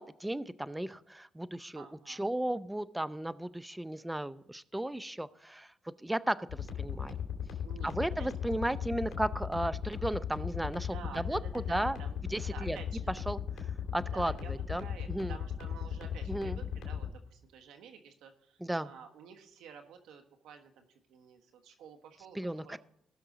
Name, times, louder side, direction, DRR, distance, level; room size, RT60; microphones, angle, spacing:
voice 1, 0.0-5.7 6.0-7.2 7.8-12.0 12.3-12.8 13.3-13.4 13.9-15.4 16.3-16.6 18.6-18.9 22.3-22.8, right 1 dB, 10° right, 16 dB, 0.5 m, -35 dB
voice 2, 1.7-2.2 7.6-7.9 8.2-8.3 10.9-12.2 12.5-13.1 14.1-22.8, right 7 dB, 85° right, 5 dB, 1.3 m, -50 dB
sound 1, 6.5-17.1, left 8 dB, 75° left, 2.3 m, -37 dB
18.5 x 6.2 x 4.0 m, 0.72 s
cardioid pair, 90°, 0 cm